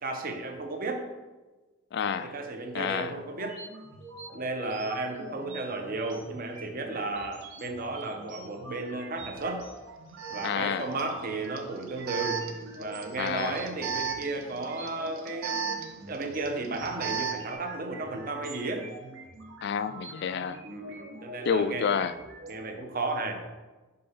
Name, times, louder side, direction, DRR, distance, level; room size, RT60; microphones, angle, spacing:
voice 1, 0.0-1.1 2.0-3.6 4.3-9.7 10.3-12.4 12.8-15.7 16.1-18.9 20.6-21.9 22.5-23.4, right 3 dB, 40° right, 0.7 m, -34 dB
voice 2, 1.9-2.3 2.7-3.1 10.4-10.9 13.2-13.6 19.6-20.6 21.5-22.2, left 7 dB, 50° left, 0.3 m, -29 dB
sound 1, 3.3-22.5, right 2 dB, 65° right, 1.0 m, -46 dB
Alarm, 9.4-9.5 10.2-17.5, right 6 dB, 85° right, 0.7 m, -36 dB
5.3 x 4.0 x 5.6 m
head